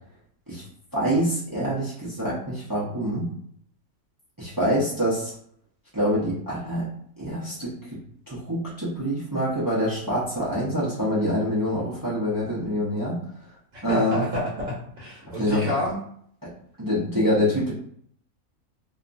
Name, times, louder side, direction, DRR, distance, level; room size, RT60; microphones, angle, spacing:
voice 1, 0.9-3.3 4.4-5.3 5.9-6.9 7.2-8.0 8.3-13.2 13.8-14.2 15.3-15.7 16.4-16.5 16.8-17.7, equal, 30° right, -8 dB, 0.4 m, -25 dB
voice 2, 13.7-16.0, left 1 dB, 65° right, -5 dB, 1.1 m, -29 dB
2.7 x 2.3 x 2.5 m, 0.64 s
omnidirectional pair, 1.6 m